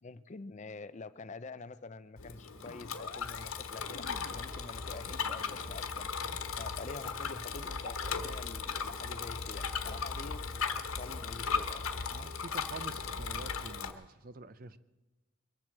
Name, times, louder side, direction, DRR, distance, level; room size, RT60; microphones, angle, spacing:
voice 1, 0.0-6.1 6.6-11.9, left 3 dB, 35° left, 14 dB, 0.5 m, -47 dB
Bicycle, 2.2-13.9, left 5 dB, 90° left, 1.2 m, -37 dB
sound 1, 2.6-3.5 3.8-4.3 4.6-5.7 6.0-6.5 6.8-7.9, left 3 dB, 70° left, 1.0 m, -50 dB
voice 2, 12.1-14.8, right 3 dB, 45° right, 15 dB, 0.5 m, -47 dB
22.5 x 7.7 x 7.5 m, 1.1 s
head